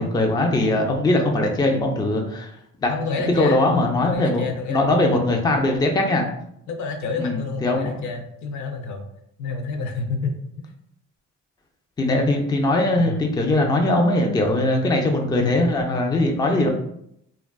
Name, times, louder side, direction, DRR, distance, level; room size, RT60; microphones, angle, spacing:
voice 1, 0.0-2.5 2.8-2.9 3.3-6.3 7.2-8.0 12.0-16.7, left 2 dB, 15° left, 2 dB, 0.3 m, -21 dB
voice 2, 2.9-5.1 6.7-9.1 9.4-10.6 12.9-13.3 15.4-15.7, left 3 dB, 70° left, 5 dB, 0.5 m, -29 dB
2.5 x 2.2 x 2.2 m, 0.74 s
cardioid pair, 90°, 30 cm